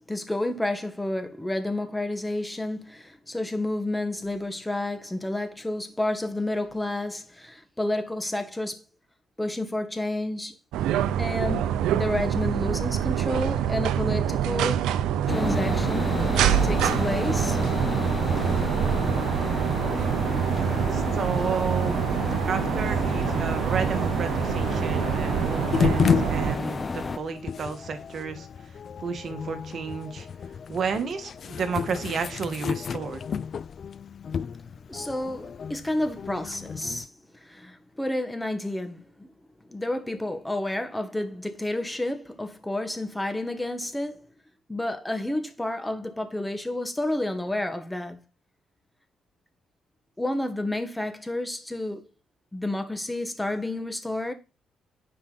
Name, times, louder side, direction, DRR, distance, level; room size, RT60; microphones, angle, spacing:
voice 1, 0.1-8.8 9.4-10.5 11.2-14.8 15.3-16.1 16.6-17.7 34.9-37.1 37.4-39.3 39.6-44.3 44.7-48.2 50.2-52.0 52.5-54.3, left 1 dB, 10° left, 1.5 m, -30 dB
sound 1, 10.7-26.6, right 10 dB, 90° right, 0.6 m, -26 dB
sound 2, 15.3-27.2, left 4 dB, 30° left, 0.8 m, -31 dB
voice 2, 20.9-22.0 22.5-28.5 29.0-30.3 30.7-33.2, right 5 dB, 55° right, 1.5 m, -32 dB
sound 3, 25.7-37.1, left 7 dB, 50° left, 0.4 m, -31 dB
9.7 x 5.1 x 4.0 m
cardioid pair, 90°, 0 cm